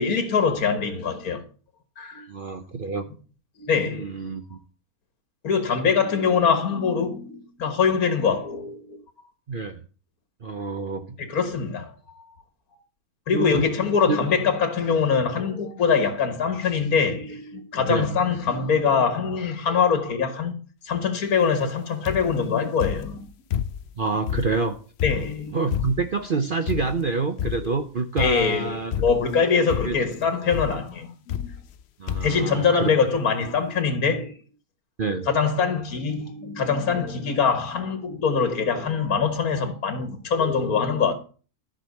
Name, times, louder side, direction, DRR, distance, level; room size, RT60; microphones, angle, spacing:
voice 1, 0.0-1.4 2.0-2.3 3.6-4.1 5.4-9.0 11.2-12.3 13.3-20.6 20.8-23.3 25.0-25.6 27.6-27.8 28.2-31.6 32.2-34.3 35.1-41.1, left 6 dB, 80° left, 2.0 m, -23 dB
voice 2, 2.3-3.1 3.9-4.6 9.5-9.8 10.4-11.2 13.3-13.7 14.1-14.2 17.9-18.1 24.0-24.8 25.5-28.9 29.8-30.0 32.0-32.9 35.0-35.3, right 4 dB, 45° right, 0.8 m, -27 dB
sound 1, 22.1-22.4 22.8-23.9 24.3-26.2 26.7-27.1 27.4-27.8 28.2-28.6 28.9-29.4 29.7-30.1 30.5-30.8 31.3-31.8 32.1-32.4 33.2-33.3 33.5-33.6, left 9 dB, 60° left, 0.8 m, -30 dB
13.5 x 5.3 x 6.8 m
omnidirectional pair, 1.5 m